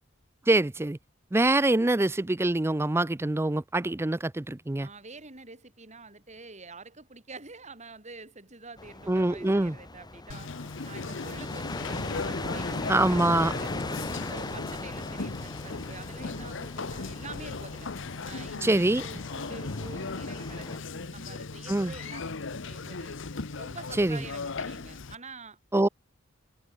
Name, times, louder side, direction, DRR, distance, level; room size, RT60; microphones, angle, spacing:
voice 1, 0.5-1.0 1.3-4.9 9.1-9.8 12.9-13.5 18.6-19.0 21.7-21.9 24.0-24.2 25.7-25.9, right 2 dB, 15° right, 0.5 m, -24 dB
voice 2, 4.8-10.5 10.8-17.9 18.2-23.2 23.6-25.6, right 3 dB, 35° right, 7.3 m, -47 dB
sound 1, 8.8-20.8, left 2 dB, 20° left, 2.0 m, -39 dB
Conversation, 10.3-25.2, left 4 dB, 65° left, 1.0 m, -37 dB
head